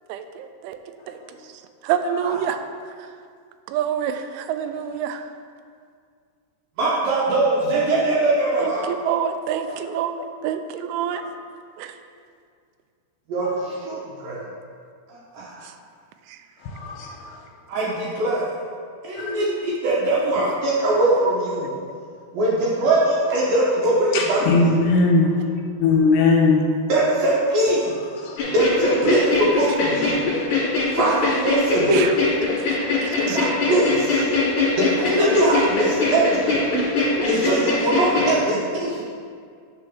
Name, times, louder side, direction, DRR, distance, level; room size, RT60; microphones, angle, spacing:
voice 1, 1.9-2.6 3.7-4.1 4.5-5.2 8.9-10.1 10.4-11.2 31.9-32.1 33.3-33.4 36.7-36.8, right 9 dB, 90° right, 8 dB, 3.0 m, -25 dB
voice 2, 6.8-8.9 13.3-14.4 15.1-15.6 17.7-18.5 19.0-21.7 22.3-24.7 26.9-27.9 28.5-30.2 30.9-32.1 33.1-34.2 34.8-36.6 37.2-39.0, right 1 dB, 70° right, -6 dB, 2.3 m, -21 dB
voice 3, 16.6-17.5 19.2-19.4 24.1-25.3 25.8-26.6 28.2-28.4, left 3 dB, 80° left, 0 dB, 2.9 m, -20 dB
sound 1, 28.4-38.3, left 3 dB, 50° left, 2.8 m, -22 dB
10.0 x 4.2 x 6.2 m, 2.2 s
omnidirectional pair, 5.4 m